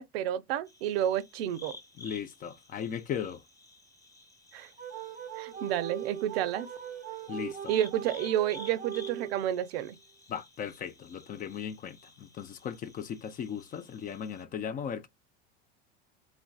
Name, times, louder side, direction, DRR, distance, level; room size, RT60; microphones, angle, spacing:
voice 1, 0.0-1.7 4.5-4.7 5.4-6.7 7.7-10.0, right 11 dB, 75° right, 0.6 m, -30 dB
sound 1, 0.7-14.4, left 3 dB, 10° left, 1.0 m, -53 dB
voice 2, 2.0-3.4 7.3-7.7 10.3-15.1, left 8 dB, 30° left, 0.4 m, -37 dB
sound 2, 4.8-9.7, right 10 dB, 25° right, 0.5 m, -40 dB
3.2 x 2.5 x 2.2 m
supercardioid pair, 110°, 30 cm